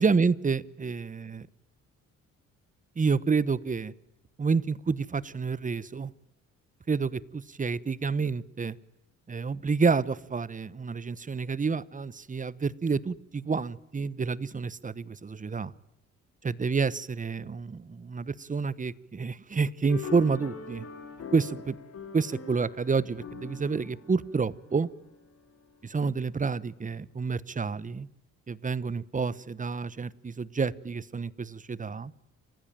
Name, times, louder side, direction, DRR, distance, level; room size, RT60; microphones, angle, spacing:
voice 1, 0.0-1.5 3.0-3.9 4.4-6.1 6.9-8.8 9.3-15.7 16.4-20.9 21.3-21.8 22.1-24.9 25.8-28.1 28.5-32.1, right 5 dB, 25° right, 20 dB, 1.1 m, -29 dB
sound 1, 19.9-25.4, left 5 dB, 55° left, 7.5 m, -43 dB
28.5 x 16.0 x 9.2 m, 0.88 s
cardioid pair, 90°, 30 cm